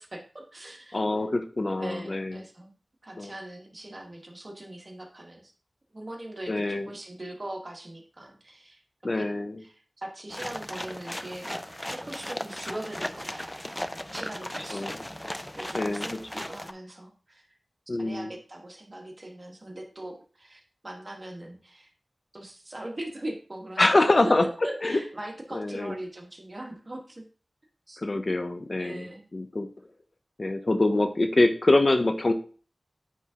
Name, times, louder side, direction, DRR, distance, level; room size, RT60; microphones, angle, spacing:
voice 1, 0.0-1.0 1.7-2.7 3.0-5.5 5.9-8.8 9.1-9.3 9.6-11.6 11.9-13.8 14.1-17.5 18.0-21.9 22.3-23.9 24.2-27.3 27.9-28.0 28.8-29.2, right 1 dB, 45° right, 1 dB, 1.5 m, -41 dB
voice 2, 0.9-2.3 3.2-3.3 6.5-6.9 9.0-9.6 14.7-15.0 15.7-16.2 17.9-18.3 23.8-24.5 24.8-25.0 25.5-25.9 28.0-29.7 30.4-32.3, left 2 dB, 55° left, 8 dB, 0.6 m, -25 dB
sound 1, 10.3-16.7, left 1 dB, 15° left, 0.4 m, -37 dB
9.2 x 3.5 x 2.9 m, 0.40 s
cardioid pair, 40°, 0 cm